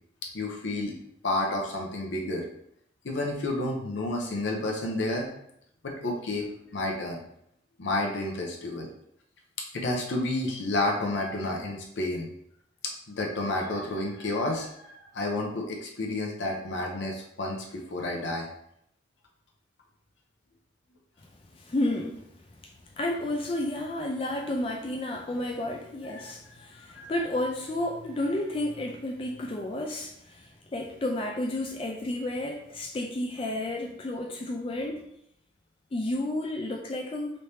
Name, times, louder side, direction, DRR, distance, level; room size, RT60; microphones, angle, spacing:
voice 1, 0.3-0.9 1.2-2.4 3.0-5.3 5.8-6.5 6.7-7.2 7.8-8.9 9.7-12.3 13.1-17.6 17.9-18.5 26.2-26.3 26.9-27.1, left 2 dB, 75° left, 0 dB, 0.7 m, -30 dB
voice 2, 21.5-22.2 23.0-35.0 35.9-37.4, left 1 dB, 30° left, 1 dB, 0.3 m, -31 dB
3.1 x 2.7 x 3.2 m, 0.73 s
head